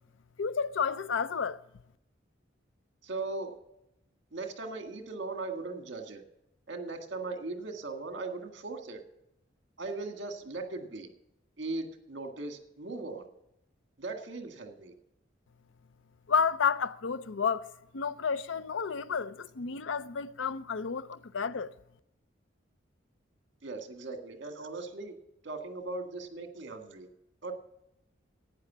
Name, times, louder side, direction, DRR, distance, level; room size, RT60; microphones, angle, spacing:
voice 1, 0.4-1.6 16.3-21.7, left 6 dB, 80° left, 0.6 m, -31 dB
voice 2, 3.0-3.6 4.3-6.2 6.7-9.0 9.8-11.1 11.6-13.3 14.0-14.9 23.6-25.1 25.4-27.1 27.4-27.5, right 3 dB, 65° right, 1.7 m, -38 dB
11.5 x 9.3 x 7.2 m
head